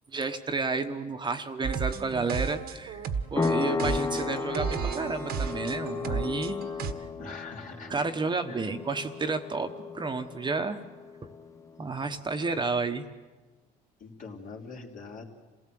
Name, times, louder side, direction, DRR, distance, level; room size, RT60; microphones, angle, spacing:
voice 1, 0.1-3.0 3.3-6.6 7.2-7.3 7.9-10.8 11.2-11.3 11.8-13.0, right 4 dB, 25° right, 6 dB, 1.2 m, -31 dB
sound 1, 1.6-6.9, right 6 dB, 65° right, 1.4 m, -33 dB
sound 2, 3.4-11.7, left 4 dB, 20° left, 0.9 m, -34 dB
voice 2, 7.2-8.1 8.5-8.7 14.0-15.2, left 4 dB, 50° left, 1 dB, 3.4 m, -43 dB
27.5 x 17.0 x 7.8 m, 1.3 s
cardioid pair, 110°, 17 cm